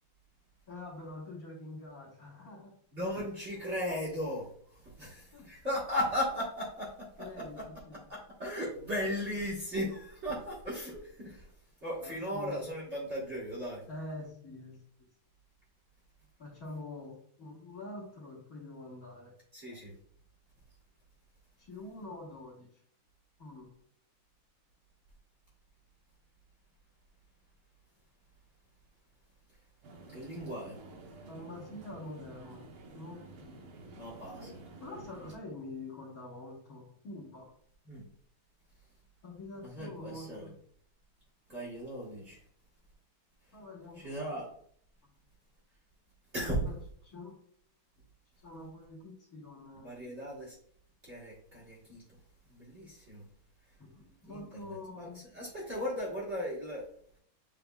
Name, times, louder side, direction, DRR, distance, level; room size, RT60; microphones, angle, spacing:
voice 1, 0.7-2.7 5.3-5.5 7.2-7.6 7.9-8.0 12.0-12.6 13.9-14.8 16.4-19.3 21.6-22.7 23.4-23.7 31.3-33.6 34.3-37.5 39.2-40.5 43.5-44.2 45.0-45.1 46.6-47.3 48.4-50.0 53.8-55.3, left 2 dB, 45° left, -5 dB, 1.8 m, -46 dB
voice 2, 2.9-7.6 7.9-11.5 11.8-13.8 19.5-19.9 30.0-30.8 33.9-34.5 37.9-38.0 39.6-40.5 41.5-42.4 44.0-44.4 46.3-46.7 49.8-50.5 51.0-52.0 52.5-53.2 54.3-55.1 55.3-56.9, equal, 35° right, -6 dB, 1.4 m, -37 dB
sound 1, 29.8-35.3, right 3 dB, 90° right, 1.8 m, -51 dB
6.9 x 3.4 x 2.2 m, 0.62 s
omnidirectional pair, 2.3 m